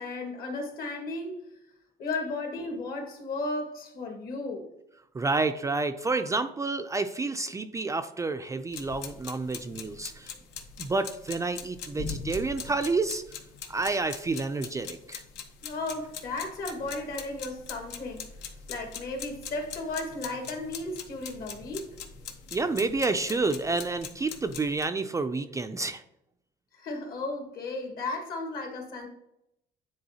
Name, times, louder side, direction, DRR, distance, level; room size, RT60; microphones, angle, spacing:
voice 1, 0.0-1.4 2.0-4.7 15.6-18.3 18.7-21.9 26.7-29.1, left 2 dB, 65° left, 3 dB, 1.7 m, -34 dB
voice 2, 5.1-10.3 10.8-13.2 13.7-15.2 22.5-26.0, right 3 dB, 20° right, 8 dB, 0.3 m, -29 dB
sound 1, 8.7-24.8, left 6 dB, 85° left, 0.9 m, -42 dB
9.5 x 4.0 x 2.8 m, 0.84 s
cardioid pair, 110°, 17 cm